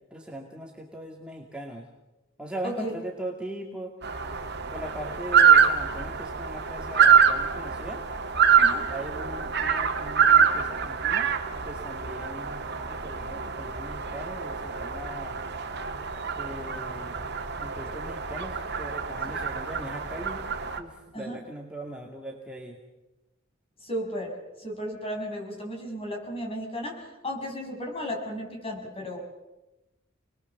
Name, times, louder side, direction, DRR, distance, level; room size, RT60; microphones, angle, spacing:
voice 1, 0.1-1.9 2.4-3.9 4.7-8.0 8.9-11.3 11.6-12.6 12.8-15.4 16.3-17.2 17.6-20.4 20.8-22.8, right 1 dB, 5° right, -1 dB, 2.3 m, -39 dB
sound 1, 4.0-20.8, right 7 dB, 55° right, 2.2 m, -25 dB
voice 2, 23.8-29.2, equal, 30° left, 1 dB, 6.1 m, -34 dB
29.5 x 21.0 x 7.0 m, 1.0 s
head